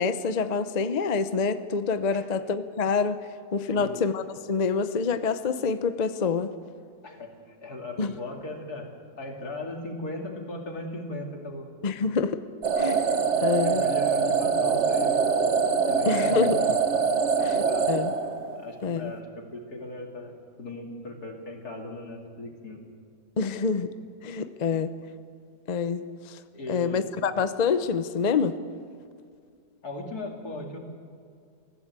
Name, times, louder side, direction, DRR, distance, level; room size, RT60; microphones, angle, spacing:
voice 1, 0.0-3.2 3.5-6.5 8.0-8.1 11.8-12.4 12.8-13.1 13.4-13.8 16.1-16.6 17.4-17.6 17.9-18.1 18.8-19.1 23.4-23.9 24.2-24.9 25.7-26.4 26.7-28.6, left 5 dB, 40° left, 11 dB, 0.6 m, -26 dB
voice 2, 3.7-4.0 7.0-8.9 9.2-11.7 13.6-15.2 15.9-16.7 17.4-17.9 18.5-20.3 20.6-22.8 26.5-27.1 29.8-30.8, left 2 dB, 60° left, 2 dB, 3.0 m, -37 dB
sound 1, 12.6-18.8, right 5 dB, 45° right, 1.3 m, -24 dB
23.0 x 15.5 x 8.3 m, 2.3 s
omnidirectional pair, 1.8 m